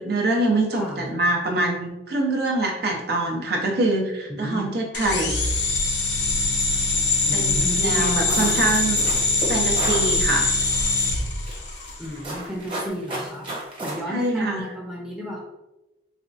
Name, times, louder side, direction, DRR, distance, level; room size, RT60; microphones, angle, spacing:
voice 1, 0.0-5.5 7.2-9.1 9.5-10.5 14.1-14.7, right 2 dB, 60° right, 0 dB, 0.6 m, -24 dB
voice 2, 0.7-1.0 4.3-4.7 7.2-8.9 12.0-13.5 13.8-15.4, equal, 5° right, -3 dB, 0.6 m, -32 dB
sound 1, 4.9-12.1, left 3 dB, 75° left, 0.6 m, -23 dB
sound 2, 8.3-10.1 10.6-11.1 11.5-13.9, right 1 dB, 30° right, 1.0 m, -33 dB
4.2 x 2.3 x 2.5 m, 1.0 s
head